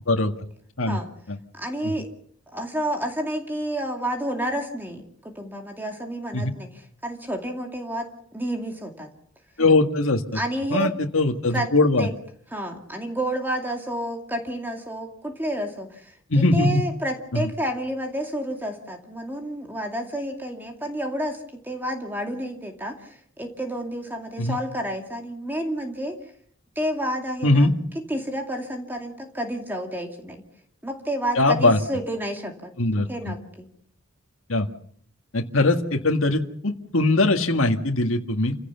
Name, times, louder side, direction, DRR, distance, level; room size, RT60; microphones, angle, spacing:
voice 1, 1.5-2.1 2.5-6.7 7.0-9.1 10.3-10.9 11.5-11.7 12.0-12.1 12.5-26.1 26.8-27.7 28.1-30.4 30.8-32.7 33.1-33.7, right 1 dB, 10° right, 3 dB, 2.4 m, -30 dB
voice 2, 9.6-10.2 10.7-12.1 16.3-16.8 17.3-17.5 24.4-24.6 27.4-27.7 31.4-31.8 32.8-33.3 34.5-34.7 35.3-38.6, left 2 dB, 70° left, 3 dB, 1.9 m, -21 dB
28.5 x 16.5 x 7.0 m, 0.64 s
head